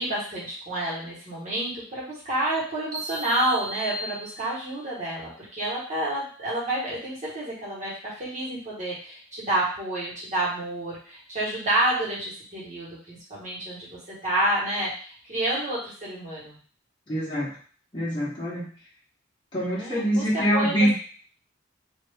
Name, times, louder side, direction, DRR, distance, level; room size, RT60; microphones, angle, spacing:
voice 1, 0.0-16.6 19.8-20.9, right 1 dB, 40° right, -6 dB, 1.5 m, -29 dB
sound 1, 2.9-4.9, right 1 dB, 20° right, 0.6 m, -36 dB
voice 2, 17.1-17.5 17.9-18.7 19.5-20.9, equal, 25° left, -8 dB, 0.9 m, -24 dB
2.7 x 2.6 x 3.4 m, 0.43 s
head